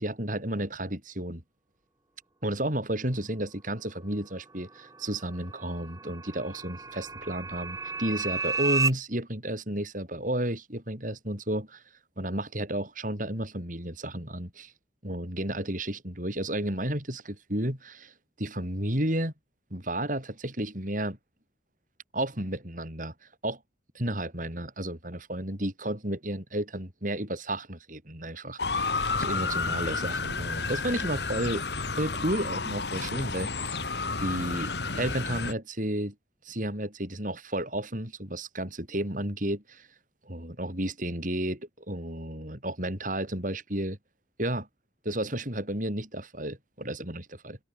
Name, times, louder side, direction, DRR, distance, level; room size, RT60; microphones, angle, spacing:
voice 1, 0.0-1.4 2.4-11.8 12.2-14.7 15.0-19.3 19.7-21.2 22.1-23.1 23.4-23.6 23.9-31.6 31.9-33.7 34.2-36.1 36.4-39.9 40.2-44.0 44.4-44.7 45.0-47.6, right 1 dB, 45° right, 8.0 m, -32 dB
sound 1, 4.6-8.9, right 4 dB, 20° right, 2.3 m, -33 dB
Motor vehicle (road) / Siren, 28.6-35.5, left 4 dB, 65° left, 2.5 m, -31 dB
head